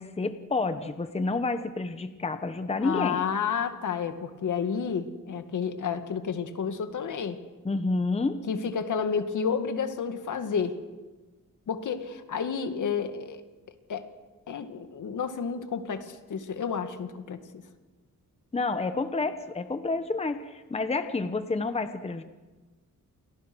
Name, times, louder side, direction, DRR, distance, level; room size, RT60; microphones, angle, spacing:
voice 1, 0.0-3.2 7.6-8.4 18.5-22.2, left 3 dB, 20° left, 9 dB, 1.1 m, -29 dB
voice 2, 2.8-7.4 8.5-10.8 11.7-13.4 13.9-14.1 14.5-17.6, left 6 dB, 70° left, 8 dB, 2.2 m, -30 dB
30.0 x 28.5 x 6.3 m, 1.3 s
wide cardioid pair, 150°, 32 cm